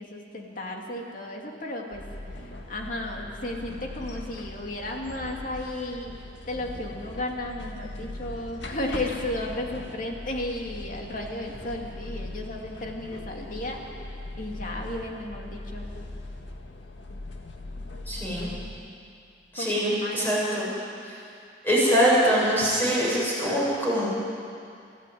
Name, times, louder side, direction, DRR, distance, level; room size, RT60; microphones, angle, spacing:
voice 1, 0.0-2.1 2.4-13.8 14.4-15.9 19.6-19.7 20.0-20.4, left 1 dB, 45° left, 0 dB, 2.8 m, -34 dB
sound 1, 1.9-18.7, left 2 dB, 80° left, 2.1 m, -40 dB
voice 2, 18.1-18.5 19.5-20.7 21.0-21.2 21.6-24.1, equal, 10° left, -6 dB, 7.8 m, -23 dB
26.5 x 14.0 x 9.6 m, 2.5 s
head